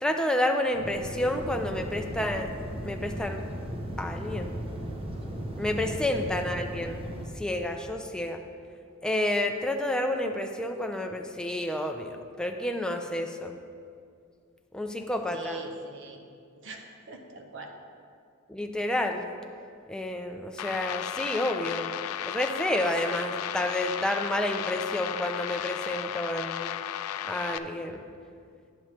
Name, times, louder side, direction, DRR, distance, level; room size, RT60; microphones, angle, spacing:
voice 1, 0.0-2.5 2.8-3.4 4.0-4.6 5.6-7.0 7.4-8.4 9.0-13.5 14.7-15.6 18.5-19.3 19.9-21.9 22.2-26.7 27.2-28.0, left 1 dB, 5° left, 4 dB, 0.4 m, -30 dB
sound 1, 0.7-7.3, right 1 dB, 25° right, 0.7 m, -36 dB
voice 2, 15.3-16.3 16.6-17.7, right 2 dB, 60° right, 3 dB, 0.7 m, -41 dB
sound 2, 20.6-27.6, left 11 dB, 85° left, 0.3 m, -34 dB
9.2 x 7.4 x 3.1 m, 2.3 s
head